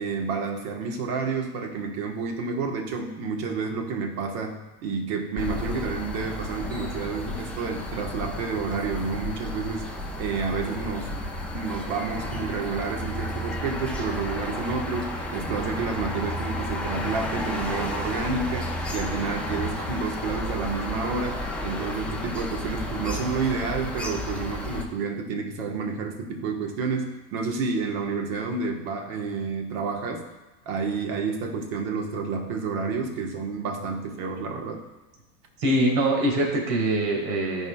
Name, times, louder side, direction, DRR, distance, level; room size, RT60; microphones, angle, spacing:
voice 1, 0.0-9.9 10.2-11.1 11.5-30.2 30.6-34.9, right 4 dB, 55° right, 3 dB, 1.5 m, -30 dB
sound 1, 5.4-24.9, left 1 dB, 5° left, 0.4 m, -32 dB
voice 2, 35.6-37.7, right 1 dB, 80° right, 0 dB, 2.1 m, -23 dB
13.5 x 4.7 x 2.4 m, 1.1 s
hypercardioid pair, 110°, 48 cm